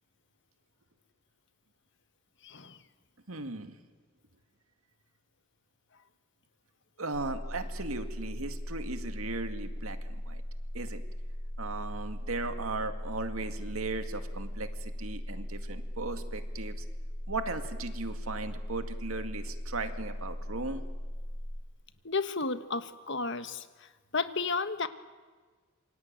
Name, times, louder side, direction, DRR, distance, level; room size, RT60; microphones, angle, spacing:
voice 1, 2.4-2.8 22.0-23.7 24.1-24.9, left 4 dB, 55° left, 11 dB, 1.5 m, -32 dB
voice 2, 3.3-3.8 7.0-10.4 10.7-11.0 11.6-16.8 17.3-20.8, right 3 dB, 85° right, 8 dB, 2.2 m, -37 dB
sound 1, 7.1-21.6, equal, 25° left, 1.1 m, -38 dB
27.5 x 24.0 x 9.0 m, 1.4 s
head